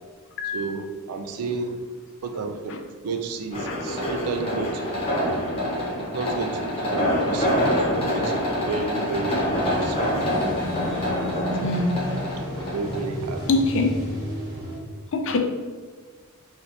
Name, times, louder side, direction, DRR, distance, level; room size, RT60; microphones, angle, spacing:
voice 1, 0.5-1.8 2.2-2.8 3.0-5.0 6.1-7.7 8.1-10.0 11.2-11.7 12.6-13.4, right 4 dB, 90° right, 6 dB, 0.4 m, -32 dB
sound 1, 3.5-13.0, equal, 25° left, 0.7 m, -26 dB
sound 2, 9.5-14.8, left 1 dB, 20° right, 1.0 m, -32 dB
voice 2, 11.6-11.9 13.5-14.0 15.1-15.4, left 3 dB, 60° left, 5 dB, 0.4 m, -23 dB
3.2 x 2.8 x 2.7 m, 1.5 s
head